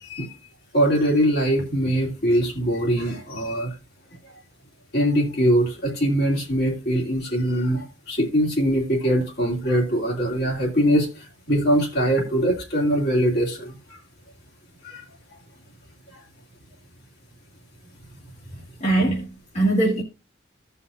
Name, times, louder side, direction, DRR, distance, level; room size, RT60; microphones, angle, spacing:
voice 1, 0.0-0.3 0.7-3.7 4.9-14.0 14.8-15.0 16.1-16.2, equal, 55° left, 2.8 m, -22 dB
voice 2, 18.8-20.0, right 2 dB, 35° left, 1.9 m, -21 dB
16.0 x 5.6 x 2.6 m
head